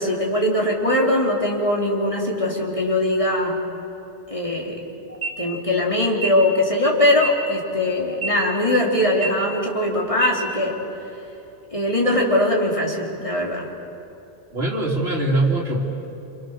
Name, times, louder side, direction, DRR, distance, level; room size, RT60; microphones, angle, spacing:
voice 1, 0.0-3.6 4.3-4.8 5.4-10.8 11.7-13.7, left 1 dB, 30° left, -2 dB, 3.5 m, -21 dB
sound 1, 5.1-5.3 6.1-6.3 7.1-7.3 8.1-8.3 9.1-9.3 10.1-10.3, right 4 dB, 10° right, 3.8 m, -27 dB
voice 2, 14.5-15.8, right 2 dB, 60° right, -1 dB, 3.3 m, -22 dB
28.0 x 27.5 x 6.7 m, 2.9 s
omnidirectional pair, 1.2 m